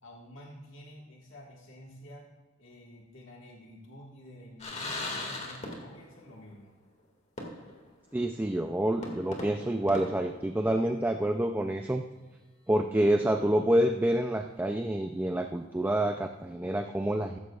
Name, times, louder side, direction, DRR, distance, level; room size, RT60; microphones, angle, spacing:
voice 1, 0.0-2.3 2.6-6.8, equal, 70° left, -1 dB, 1.8 m, -50 dB
sound 1, 4.6-6.2 6.5-6.6 7.4-7.9 8.3-8.4 9.0-11.0, left 2 dB, 35° left, 2.0 m, -39 dB
voice 2, 8.1-12.0 12.7-17.4, right 1 dB, 10° right, 5 dB, 0.4 m, -27 dB
14.5 x 14.0 x 2.4 m, 1.2 s
head